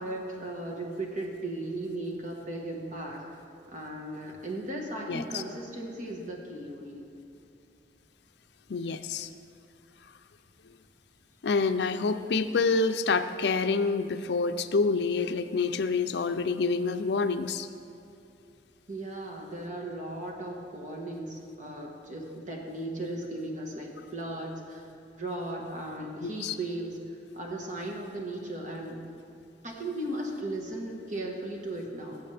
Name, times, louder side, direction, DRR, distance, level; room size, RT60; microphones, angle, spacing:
voice 1, 0.0-3.2 3.7-7.1 18.9-24.9 25.2-27.0 27.3-29.0 29.6-32.2, right 1 dB, 45° right, 0 dB, 1.5 m, -36 dB
voice 2, 5.1-5.4 8.7-9.3 11.4-17.7 26.2-26.6, left 4 dB, 70° left, 8 dB, 0.5 m, -27 dB
17.5 x 7.1 x 3.4 m, 2.6 s
head